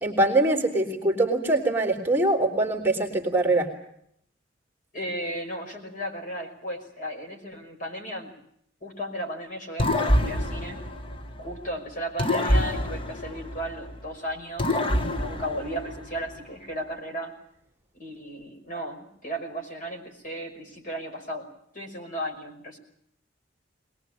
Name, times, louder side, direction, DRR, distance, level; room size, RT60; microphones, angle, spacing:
voice 1, 0.0-3.7, right 2 dB, 10° right, 1 dB, 3.2 m, -23 dB
voice 2, 4.9-8.3 8.8-10.8 11.4-17.3 18.0-21.5 21.7-22.8, equal, 45° left, 2 dB, 5.6 m, -35 dB
sound 1, 9.8-11.7 12.2-14.1 14.6-16.3, left 1 dB, 30° left, 1.2 m, -26 dB
22.5 x 20.5 x 8.9 m, 0.71 s
head